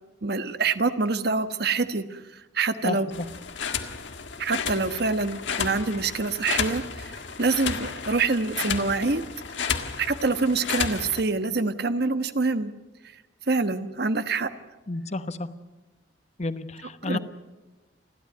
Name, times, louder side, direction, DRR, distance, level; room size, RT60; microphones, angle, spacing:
voice 1, 0.2-3.1 4.4-9.2 10.0-12.7 13.5-14.5 17.0-17.2, right 3 dB, 60° right, 11 dB, 1.2 m, -26 dB
voice 2, 2.8-3.2 14.9-15.5 16.4-17.2, left 2 dB, 40° left, 12 dB, 1.1 m, -31 dB
sound 1, 3.1-11.2, left 6 dB, 80° left, 1.7 m, -32 dB
30.0 x 12.5 x 9.4 m, 1.1 s
head